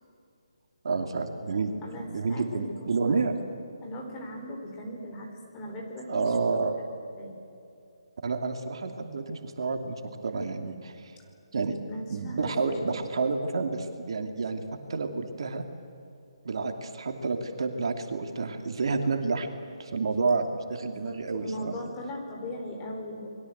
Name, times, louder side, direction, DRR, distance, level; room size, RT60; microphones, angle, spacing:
voice 1, 0.8-3.3 6.1-6.8 8.2-11.1 11.5-11.8 12.1-14.6 14.9-15.6 16.4-19.5 19.8-21.7, right 4 dB, 60° right, 5 dB, 2.7 m, -29 dB
voice 2, 1.8-3.2 3.8-6.3 7.2-7.3 11.9-12.9 20.8-23.3, left 1 dB, 20° left, 1 dB, 4.8 m, -39 dB
29.5 x 21.5 x 8.1 m, 2.6 s
figure-of-eight pair, 155°, 3 cm